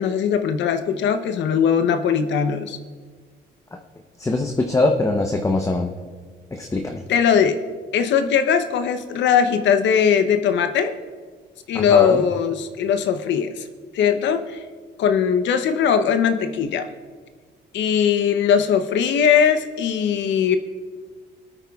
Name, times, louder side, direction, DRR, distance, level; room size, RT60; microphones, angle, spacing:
voice 1, 0.0-2.8 7.1-7.6 7.9-10.9 11.7-13.6 13.9-14.6 15.0-16.9 17.7-20.6, left 7 dB, 75° left, 8 dB, 0.7 m, -20 dB
voice 2, 4.2-5.9 6.5-7.0 11.7-12.2, left 2 dB, 15° left, 3 dB, 0.8 m, -22 dB
23.0 x 8.9 x 2.3 m, 1.5 s
cardioid pair, 105°, 19 cm